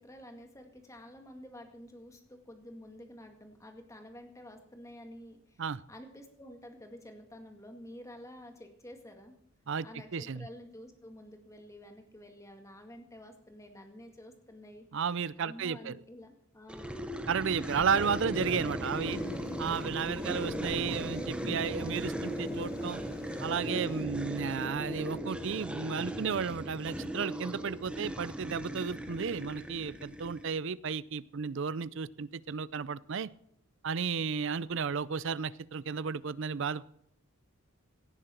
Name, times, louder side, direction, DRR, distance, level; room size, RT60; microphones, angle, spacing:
voice 1, 0.0-9.4 9.8-14.9 15.4-17.0, left 1 dB, 15° left, 4 dB, 2.1 m, -50 dB
voice 2, 10.1-10.5 14.9-16.0 17.3-19.2 19.6-23.0 23.4-33.3 33.8-36.8, right 6 dB, 60° right, 19 dB, 0.5 m, -33 dB
sound 1, 16.7-30.6, equal, 5° right, 1.1 m, -37 dB
Thunder, 18.8-24.0, left 2 dB, 45° left, 0.7 m, -48 dB
17.5 x 10.5 x 4.5 m, 0.74 s
head